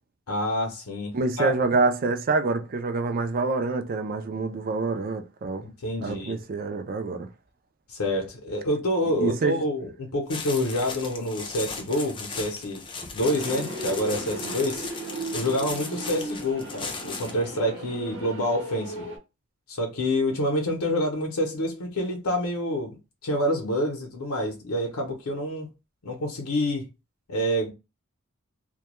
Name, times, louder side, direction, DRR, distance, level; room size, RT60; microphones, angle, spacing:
voice 1, 0.3-1.5 5.6-6.4 7.9-12.8 13.1-14.9 15.3-19.1 19.7-23.0 23.2-25.7 26.0-26.9 27.3-27.7, left 1 dB, 85° left, 0.7 m, -27 dB
voice 2, 1.1-5.7 6.0-7.3 9.2-9.6, right 3 dB, 40° right, 0.4 m, -26 dB
sound 1, 10.3-17.4, left 4 dB, 25° left, 0.4 m, -37 dB
sound 2, 13.2-19.2, right 2 dB, 60° right, 0.9 m, -36 dB
2.2 x 2.1 x 2.9 m
head